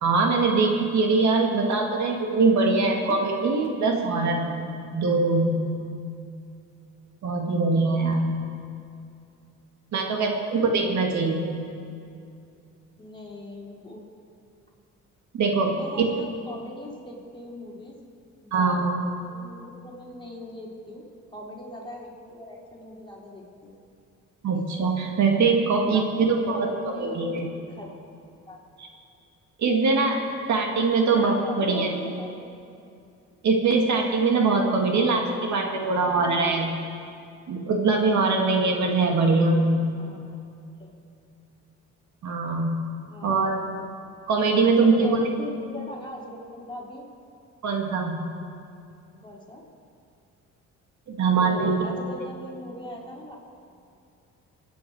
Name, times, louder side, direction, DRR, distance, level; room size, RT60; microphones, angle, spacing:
voice 1, 0.0-4.5 4.9-5.6 7.2-8.2 9.9-11.5 15.3-16.1 18.5-18.9 24.4-27.5 29.6-30.2 30.5-31.9 33.4-36.7 37.5-39.9 42.2-42.7 43.2-43.8 44.3-45.2 47.6-48.2 51.1-51.7, right 3 dB, 70° right, 2 dB, 1.9 m, -22 dB
voice 2, 2.8-3.2 10.0-10.3 13.0-14.1 15.7-18.0 18.4-18.9 19.3-21.1 21.3-23.7 24.5-24.6 25.8-27.9 28.5-28.6 31.1-32.3 36.0-36.4 39.9-40.4 40.8-40.9 43.1-43.6 44.7-47.0 49.2-49.6 51.3-53.4, left 1 dB, 15° left, -3 dB, 3.5 m, -40 dB
24.0 x 9.3 x 4.7 m, 2.5 s
cardioid pair, 90°, 30 cm